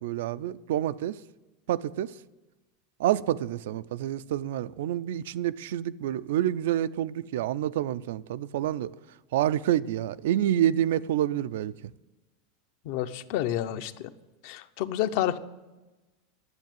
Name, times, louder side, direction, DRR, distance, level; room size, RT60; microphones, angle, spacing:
voice 1, 0.0-1.2 1.7-2.1 3.0-8.9 9.3-11.7, right 12 dB, 75° right, 0.4 m, -28 dB
voice 2, 12.8-14.1 14.4-15.4, left 12 dB, 55° left, 0.6 m, -29 dB
9.7 x 7.5 x 9.0 m
supercardioid pair, 160°, 0 cm